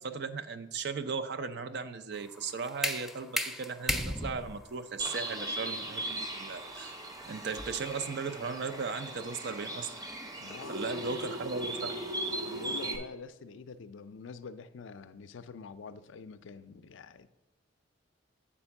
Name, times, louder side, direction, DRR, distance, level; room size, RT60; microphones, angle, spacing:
voice 1, 0.0-7.0 7.3-9.9 10.7-12.0, right 5 dB, 55° right, 9 dB, 0.5 m, -37 dB
sound 1, 2.1-7.9, left 1 dB, ahead, 0.3 m, -37 dB
Bird, 5.0-13.0, right 2 dB, 20° right, 0.7 m, -39 dB
voice 2, 10.4-11.1 11.7-11.8 12.4-17.3, left 5 dB, 70° left, 12 dB, 0.4 m, -46 dB
sound 2, 10.6-13.0, equal, 80° right, 1.7 m, -39 dB
7.3 x 4.4 x 5.8 m, 0.95 s
head